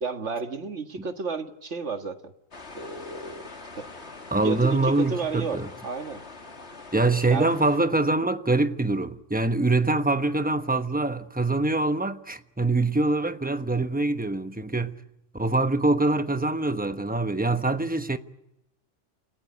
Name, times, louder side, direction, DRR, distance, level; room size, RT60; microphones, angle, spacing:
voice 1, 0.0-2.3 2.7-3.5 3.8-3.9 4.4-6.2 7.3-7.5, right 4 dB, 65° right, 2.0 m, -32 dB
sound 1, 2.5-7.8, left 3 dB, 60° left, 2.6 m, -44 dB
voice 2, 4.3-5.7 6.9-15.0 15.3-18.2, right 2 dB, 10° right, 1.0 m, -24 dB
29.5 x 16.0 x 9.6 m
omnidirectional pair, 1.3 m